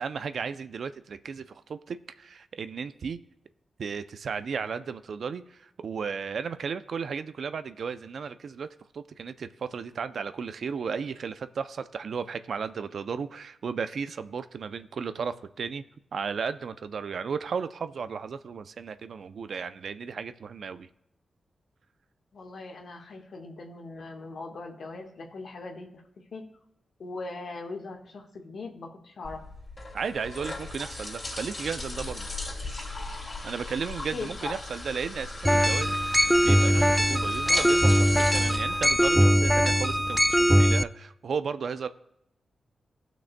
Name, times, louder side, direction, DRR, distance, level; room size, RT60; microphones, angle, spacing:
voice 1, 0.0-3.2 3.8-8.7 8.9-15.8 16.1-20.9 29.9-32.3 33.4-41.9, right 6 dB, 75° right, 12 dB, 0.4 m, -34 dB
voice 2, 22.3-26.0 26.3-26.5 27.0-29.4 34.1-34.5, left 3 dB, 75° left, 2 dB, 1.4 m, -40 dB
sound 1, 29.2-39.6, left 2 dB, 40° left, 2.7 m, -38 dB
sound 2, 35.4-40.8, equal, 5° right, 0.3 m, -21 dB
17.0 x 6.0 x 2.2 m, 0.81 s
cardioid pair, 55°, 0 cm